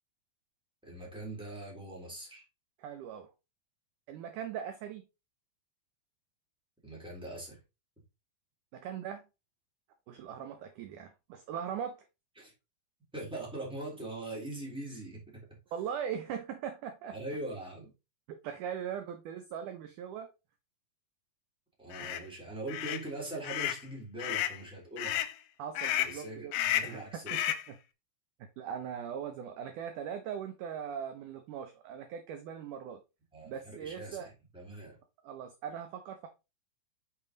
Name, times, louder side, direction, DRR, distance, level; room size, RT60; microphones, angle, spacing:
voice 1, 0.8-2.4 6.8-7.6 12.4-12.5 13.1-15.5 17.1-17.9 21.8-25.2 26.0-27.4 33.3-35.0, right 2 dB, ahead, 3.0 m, -42 dB
voice 2, 2.8-3.3 4.1-5.0 8.7-9.2 10.1-12.0 15.7-17.2 18.3-20.3 22.0-22.1 25.6-26.5 26.8-27.4 27.7-27.8 28.6-33.0 33.4-34.3 35.2-36.3, right 8 dB, 75° right, 2.0 m, -40 dB
sound 1, 21.9-22.2 22.7-23.0 23.4-23.8 24.2-24.6 25.0-25.3 25.8-26.2 26.5-27.0 27.3-27.7, left 12 dB, 90° left, 2.5 m, -32 dB
6.7 x 5.9 x 3.9 m
omnidirectional pair, 4.3 m